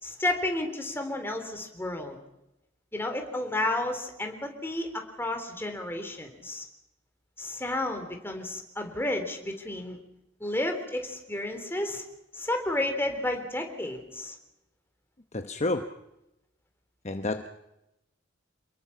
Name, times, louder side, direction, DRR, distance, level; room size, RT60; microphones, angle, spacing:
voice 1, 0.0-2.2 2.9-6.7 7.4-10.0 10.4-12.0 12.3-14.4, left 1 dB, 10° left, 4 dB, 3.8 m, -31 dB
voice 2, 15.3-15.9 17.0-17.5, left 2 dB, 35° left, 7 dB, 1.1 m, -29 dB
28.5 x 21.5 x 5.9 m, 0.90 s
head